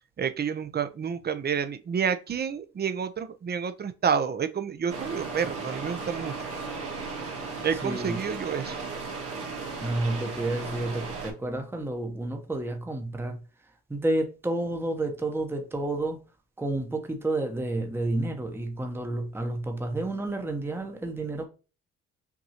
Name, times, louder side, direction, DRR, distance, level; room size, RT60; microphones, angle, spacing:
voice 1, 0.2-6.3 7.6-8.8, right 7 dB, 35° right, 0.6 m, -29 dB
sound 1, 4.9-11.3, right 4 dB, 50° right, 1.7 m, -36 dB
voice 2, 7.8-8.2 9.8-13.4 13.9-16.2 16.6-21.5, right 2 dB, 10° right, 0.9 m, -30 dB
5.9 x 2.6 x 2.8 m
cardioid pair, 90°, 30 cm